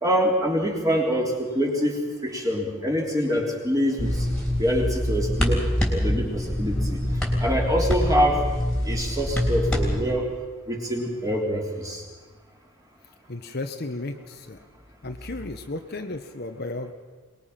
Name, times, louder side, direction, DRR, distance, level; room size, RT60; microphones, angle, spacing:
voice 1, 0.0-4.3 4.6-5.6 5.9-7.0 7.4-8.4 8.8-10.3 10.7-12.0, equal, 15° right, -1 dB, 3.4 m, -25 dB
sound 1, 4.0-10.0, equal, 5° left, 3.4 m, -25 dB
voice 2, 13.3-14.6 15.0-16.9, left 2 dB, 45° left, 6 dB, 1.0 m, -34 dB
23.5 x 20.5 x 5.8 m, 1.4 s
head